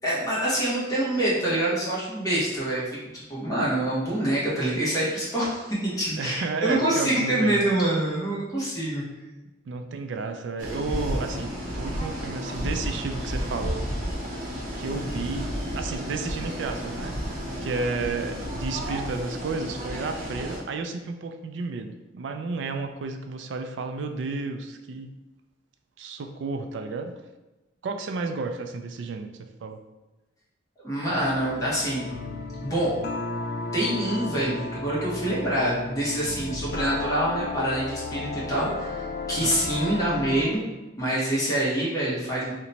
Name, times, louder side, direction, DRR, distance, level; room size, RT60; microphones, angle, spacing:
voice 1, 0.0-2.8 3.1-9.0 30.8-32.1 32.6-32.9 33.7-40.6 41.0-42.5, right 1 dB, 20° left, -8 dB, 1.0 m, -26 dB
voice 2, 6.2-7.6 9.7-13.9 14.7-17.2 17.6-25.1 26.0-27.1 27.8-29.8 39.4-39.6, right 3 dB, 75° right, 7 dB, 0.3 m, -32 dB
sound 1, 10.6-20.6, equal, 45° right, 0.7 m, -32 dB
sound 2, 31.1-40.6, left 3 dB, 55° left, 0.3 m, -34 dB
2.9 x 2.2 x 3.9 m, 1.1 s
head